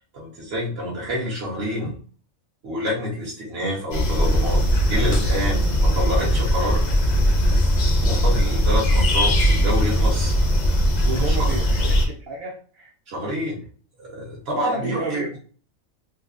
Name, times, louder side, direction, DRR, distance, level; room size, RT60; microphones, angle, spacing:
voice 1, 0.1-2.0 2.6-4.6 4.9-6.8 8.0-10.3 11.2-11.5 13.1-13.5 14.0-15.2, equal, 45° right, -4 dB, 1.3 m, -27 dB
sound 1, 3.9-12.1, equal, 55° left, 0.5 m, -19 dB
voice 2, 8.1-8.8 11.0-12.9 14.6-15.4, right 3 dB, 75° right, -3 dB, 1.0 m, -31 dB
3.9 x 2.1 x 2.5 m, 0.43 s
omnidirectional pair, 1.5 m